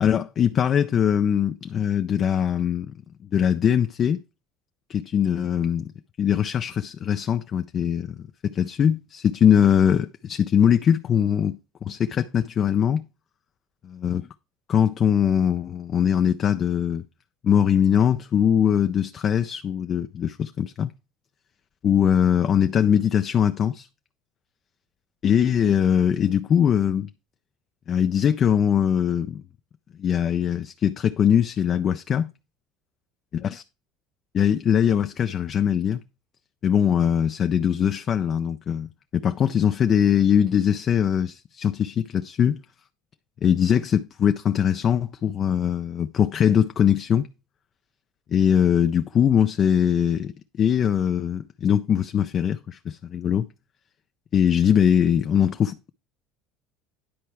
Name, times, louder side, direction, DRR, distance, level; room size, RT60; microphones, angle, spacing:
voice 1, 0.0-2.9 3.3-4.2 4.9-5.9 6.2-8.2 8.4-13.1 14.0-14.2 14.7-17.0 17.4-20.9 21.8-23.9 25.2-27.1 27.9-29.4 30.0-32.3 34.3-36.0 36.6-42.6 43.4-47.3 48.3-53.5 54.3-55.9, left 8 dB, 40° left, 0.4 m, -21 dB
10.5 x 4.5 x 4.6 m
cardioid pair, 125°, 0 cm